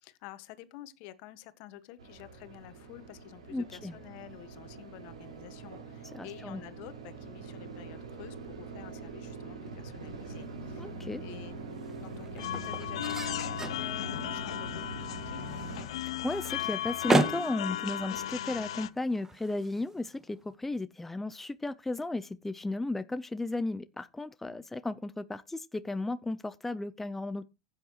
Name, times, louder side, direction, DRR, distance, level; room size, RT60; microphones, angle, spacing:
voice 1, 0.0-10.9 11.2-11.5 12.0-15.4 24.4-24.6, left 14 dB, 55° left, 1.5 m, -49 dB
sound 1, 2.0-15.8, right 3 dB, 85° right, 4.5 m, -43 dB
voice 2, 3.5-3.9 6.1-6.6 10.8-11.2 15.9-27.5, left 2 dB, 10° left, 0.6 m, -34 dB
sound 2, 10.2-20.5, right 2 dB, 15° right, 1.7 m, -37 dB
sound 3, 12.4-18.9, left 12 dB, 70° left, 0.8 m, -36 dB
15.5 x 8.9 x 3.0 m
hypercardioid pair, 105°, 3 cm